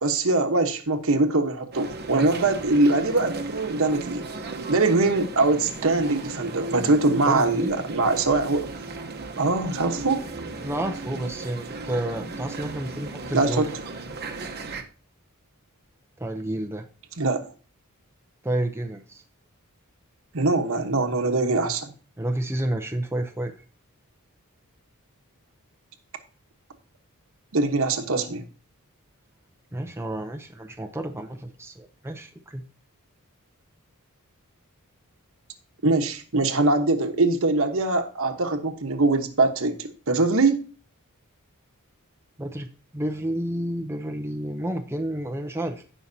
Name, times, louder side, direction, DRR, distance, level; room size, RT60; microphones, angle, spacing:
voice 1, 0.0-4.3 4.7-8.7 9.4-10.2 13.3-13.7 17.2-17.4 20.3-21.9 27.5-28.4 35.8-40.6, right 2 dB, 65° right, 6 dB, 1.2 m, -22 dB
sound 1, 1.7-14.8, right 3 dB, 45° right, 1.0 m, -36 dB
voice 2, 7.2-7.8 10.6-13.7 16.2-16.8 18.4-19.2 22.2-23.5 29.7-32.6 42.4-45.8, right 1 dB, 10° right, 4 dB, 0.6 m, -30 dB
16.5 x 5.7 x 2.8 m, 0.38 s
head